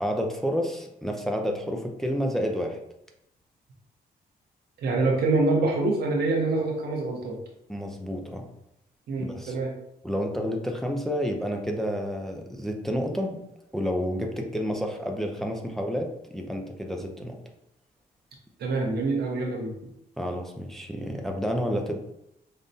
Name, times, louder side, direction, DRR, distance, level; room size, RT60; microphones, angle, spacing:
voice 1, 0.0-2.8 7.7-8.5 9.2-9.6 10.0-13.4 13.7-17.4 20.2-21.9, equal, ahead, 2 dB, 0.5 m, -30 dB
voice 2, 4.8-7.4 9.1-9.7 18.6-19.8, right 3 dB, 80° right, 0 dB, 0.9 m, -25 dB
5.2 x 2.1 x 2.6 m, 0.82 s
cardioid pair, 105°, 17 cm